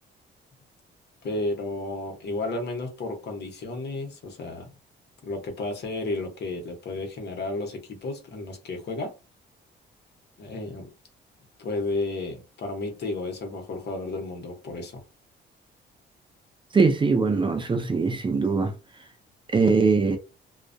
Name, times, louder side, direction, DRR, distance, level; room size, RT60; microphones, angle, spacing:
voice 1, 1.2-4.7 5.2-9.1 10.4-10.9 11.6-15.0, left 2 dB, 55° left, 0.9 m, -32 dB
voice 2, 16.7-18.7 19.5-20.2, right 4 dB, 25° right, 0.4 m, -21 dB
2.3 x 2.1 x 2.6 m
cardioid pair, 90°, 20 cm